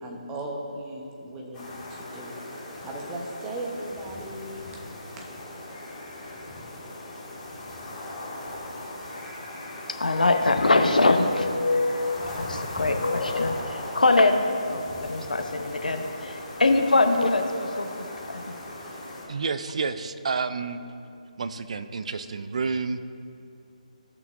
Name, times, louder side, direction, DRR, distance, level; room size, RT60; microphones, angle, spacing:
voice 1, 0.0-2.4 2.8-4.8, right 1 dB, 15° right, -1 dB, 1.0 m, -37 dB
sound 1, 1.5-19.2, left 1 dB, 15° left, 1.9 m, -39 dB
voice 2, 9.9-17.9 18.3-18.4, left 2 dB, 80° left, 5 dB, 0.8 m, -23 dB
voice 3, 19.3-20.9 21.4-23.0, right 4 dB, 55° right, 11 dB, 0.4 m, -30 dB
15.0 x 5.9 x 2.6 m, 2.6 s
figure-of-eight pair, 150°, 4 cm